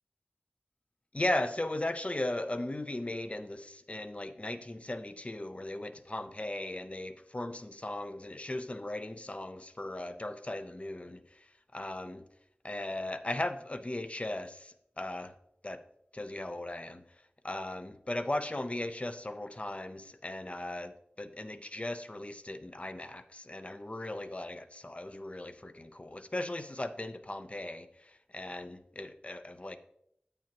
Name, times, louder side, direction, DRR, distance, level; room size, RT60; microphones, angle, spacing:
voice 1, 1.1-12.3 12.6-15.3 15.6-15.8 16.1-17.0 17.4-29.8, left 1 dB, 40° left, 10 dB, 0.6 m, -37 dB
8.8 x 8.7 x 2.9 m, 0.74 s
wide cardioid pair, 50°, 3 cm